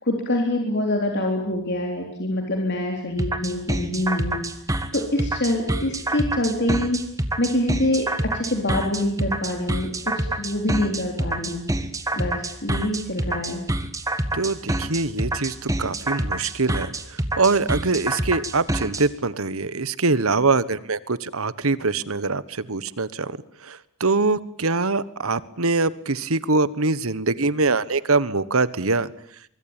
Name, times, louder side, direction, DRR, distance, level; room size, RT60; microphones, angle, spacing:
voice 1, 0.0-4.4 4.9-7.0 7.4-11.6 12.1-13.6, left 1 dB, 50° left, 2 dB, 3.9 m, -25 dB
sound 1, 3.2-19.0, right 1 dB, 15° right, 1.8 m, -26 dB
voice 2, 14.3-16.9 17.4-23.4 23.6-29.1, right 3 dB, 75° right, 17 dB, 1.3 m, -23 dB
24.5 x 23.5 x 9.0 m, 0.68 s
head